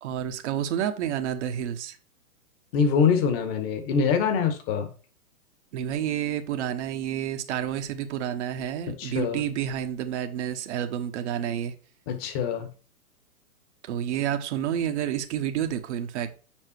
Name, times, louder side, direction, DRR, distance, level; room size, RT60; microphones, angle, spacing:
voice 1, 0.0-2.0 5.7-11.7 13.8-16.4, right 10 dB, 50° right, 1.3 m, -29 dB
voice 2, 2.7-4.9 9.0-9.4 12.1-12.7, left 6 dB, 40° left, 1.9 m, -24 dB
7.5 x 5.5 x 4.6 m
hypercardioid pair, 115°, 44 cm